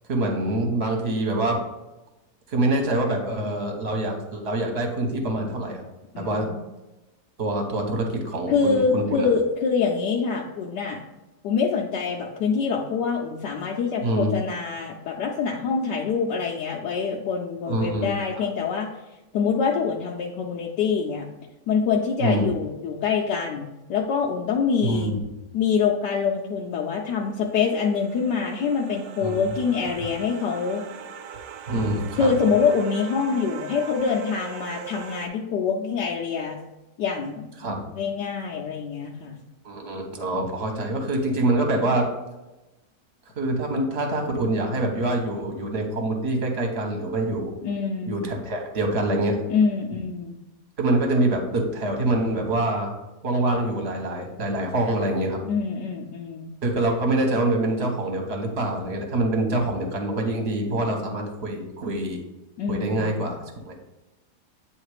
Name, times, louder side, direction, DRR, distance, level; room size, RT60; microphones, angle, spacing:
voice 1, 0.1-1.6 2.5-5.8 6.1-6.5 7.4-9.3 14.0-14.3 17.7-18.0 18.4-18.5 22.2-22.5 24.8-25.2 29.2-29.4 31.7-32.3 37.6-37.8 39.6-42.1 43.4-47.6 48.0-49.4 50.8-52.9 53.2-55.4 56.6-62.2 62.7-63.4 63.7-63.8, right 2 dB, 40° right, 2 dB, 1.3 m, -25 dB
voice 2, 6.1-6.6 8.5-11.0 11.4-18.9 19.3-21.3 21.7-25.1 25.5-30.8 32.2-36.6 37.0-37.5 37.9-39.4 47.6-48.2 49.5-50.4 55.5-56.6 62.6-63.4, left 5 dB, 85° left, -1 dB, 1.3 m, -25 dB
sound 1, 26.8-35.3, right 8 dB, 85° right, 1.2 m, -41 dB
8.8 x 3.2 x 4.8 m, 1.0 s
omnidirectional pair, 1.8 m